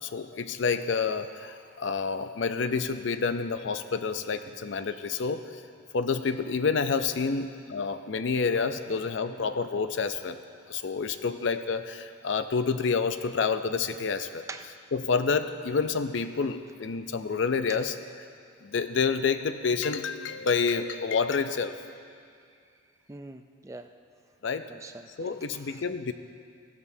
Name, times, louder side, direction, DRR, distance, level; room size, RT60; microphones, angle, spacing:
voice 1, 0.0-5.4 5.9-10.4 10.7-14.4 14.9-18.0 18.6-21.7 24.4-24.7 25.2-26.1, left 5 dB, 70° left, 10 dB, 0.5 m, -28 dB
voice 2, 23.1-23.9 24.7-25.8, right 3 dB, 15° right, 7 dB, 0.3 m, -45 dB
15.5 x 12.5 x 2.7 m, 2.3 s
head